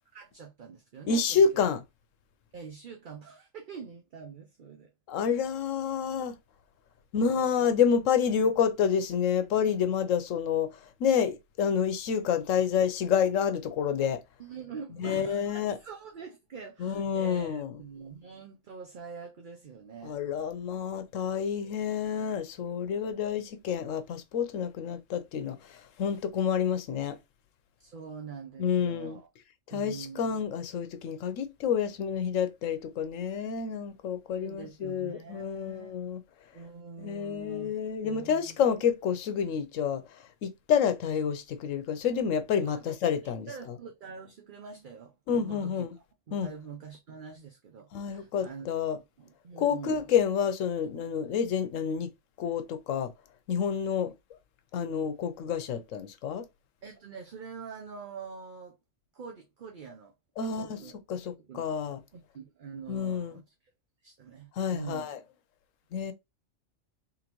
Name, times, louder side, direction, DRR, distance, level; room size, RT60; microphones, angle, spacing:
voice 1, 0.1-1.4 2.5-4.9 7.1-7.7 14.4-20.2 27.8-29.3 29.7-30.4 34.3-35.9 36.5-37.7 38.0-38.6 42.7-43.0 43.2-45.1 45.4-45.9 46.3-50.1 56.8-58.8 59.1-61.8 62.1-63.5 64.0-65.1, right 6 dB, 50° right, 0.7 m, -45 dB
voice 2, 1.1-1.8 5.1-6.4 7.1-10.7 11.0-14.2 15.0-15.8 16.8-17.7 20.0-27.2 28.6-29.2 29.7-36.2 37.0-40.0 40.4-43.5 45.3-45.9 46.3-46.5 47.9-49.0 49.6-52.1 52.4-53.1 53.5-54.1 54.7-56.5 60.4-60.8 61.1-62.0 62.9-63.4 64.6-65.2 65.9-66.1, left 7 dB, 80° left, 1.0 m, -28 dB
3.9 x 3.7 x 2.9 m
omnidirectional pair, 1.3 m